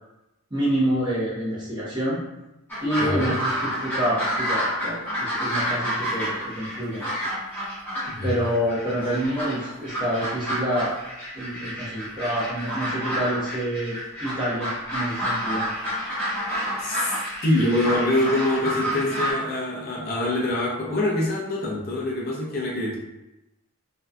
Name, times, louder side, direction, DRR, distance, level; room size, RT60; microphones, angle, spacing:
voice 1, 0.5-2.2 2.8-7.0 8.2-11.0 11.3-15.6, right 1 dB, 20° right, -7 dB, 0.6 m, -27 dB
sound 1, 2.7-19.3, equal, 10° left, 0.8 m, -29 dB
voice 2, 3.0-3.4 8.1-8.3 16.8-17.0 17.4-23.0, left 1 dB, 45° left, -5 dB, 0.5 m, -24 dB
2.6 x 2.2 x 2.3 m, 0.94 s
head